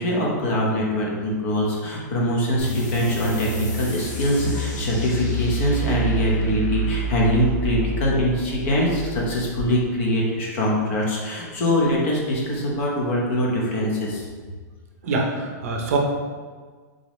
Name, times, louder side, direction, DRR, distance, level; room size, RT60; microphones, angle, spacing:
voice 1, 0.0-14.3, equal, 40° left, -3 dB, 0.8 m, -23 dB
sound 1, 2.6-9.7, equal, 90° left, 1.0 m, -28 dB
voice 2, 15.0-16.0, right 3 dB, 50° right, 1 dB, 0.6 m, -24 dB
3.7 x 3.6 x 3.0 m, 1.5 s
supercardioid pair, 175°, 10 cm